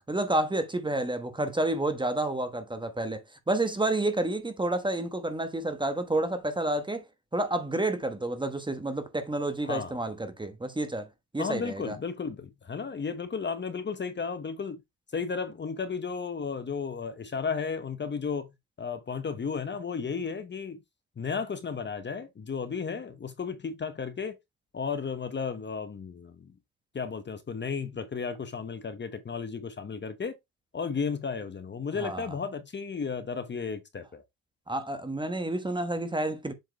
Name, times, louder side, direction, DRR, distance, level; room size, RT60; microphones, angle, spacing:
voice 1, 0.1-7.0 7.3-11.1 11.3-12.0 32.0-32.3 34.7-36.5, right 2 dB, 15° right, 1.2 m, -29 dB
voice 2, 9.6-10.0 11.4-14.8 15.1-18.5 18.8-20.8 21.2-24.4 24.7-26.5 26.9-30.3 30.7-34.2, left 5 dB, 30° left, 1.1 m, -34 dB
7.9 x 4.6 x 3.0 m
cardioid pair, 120°, 37 cm